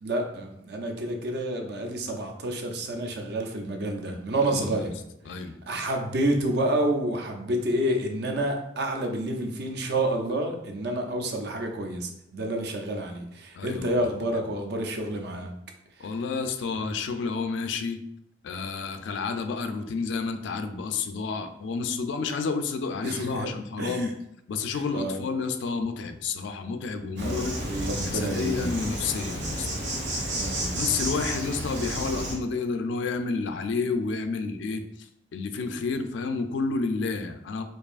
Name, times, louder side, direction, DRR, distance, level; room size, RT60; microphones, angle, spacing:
voice 1, 0.0-5.0 5.7-15.5 23.0-23.5 23.8-24.1 24.7-25.2 27.2-28.7 30.3-30.8, right 1 dB, 60° right, 4 dB, 0.5 m, -29 dB
voice 2, 4.4-4.9 5.3-5.5 13.5-14.0 16.0-18.0 18.4-24.1 24.5-27.5 28.0-29.7 30.7-37.6, left 4 dB, 70° left, 7 dB, 0.3 m, -30 dB
Insect, 27.2-32.3, right 1 dB, 75° right, 1.0 m, -31 dB
4.6 x 2.6 x 2.4 m, 0.79 s
head